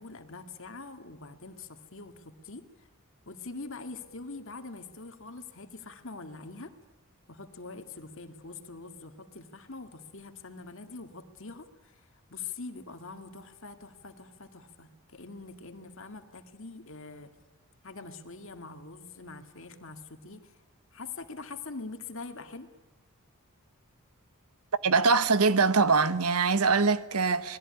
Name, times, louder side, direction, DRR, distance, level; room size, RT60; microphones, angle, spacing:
voice 1, 0.0-2.9 3.3-6.7 7.3-12.0 12.3-17.3 17.8-20.5 20.9-22.7, left 3 dB, 60° left, 2.2 m, -44 dB
voice 2, 24.8-27.6, right 4 dB, 85° right, 1.2 m, -23 dB
27.5 x 20.0 x 9.9 m
head